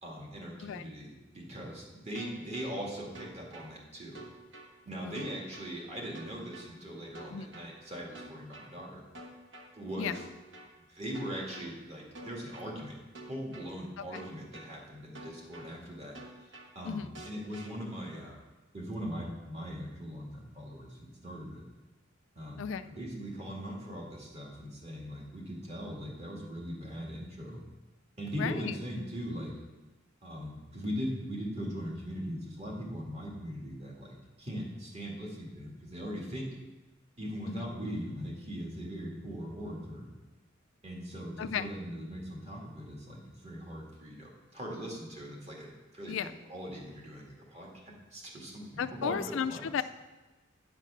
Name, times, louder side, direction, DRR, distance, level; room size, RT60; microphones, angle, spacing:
voice 1, 0.0-4.3 4.9-9.0 9.7-10.2 10.9-13.0 13.3-16.2 16.7-18.4 18.7-21.6 22.4-27.6 28.2-29.6 30.2-36.5 37.2-40.1 40.8-46.2 46.5-49.7, equal, 30° right, -2 dB, 2.0 m, -40 dB
sound 1, 2.1-2.7 3.1-3.7 4.1-4.7 5.1-5.7 6.1-6.7 7.1-7.7 8.1-8.7 9.1-9.7 10.1-10.7 11.1-11.7 12.1-12.7 13.1-13.7 14.1-14.7 15.1-15.7 16.1-16.7 17.1-17.7, right 2 dB, 60° right, 1.3 m, -47 dB
voice 2, 22.6-22.9 28.4-28.7 37.5-37.6 41.4-41.7 46.1-46.3 48.8-49.8, left 7 dB, 65° left, 11 dB, 0.4 m, -34 dB
9.9 x 5.9 x 5.7 m, 1.2 s
head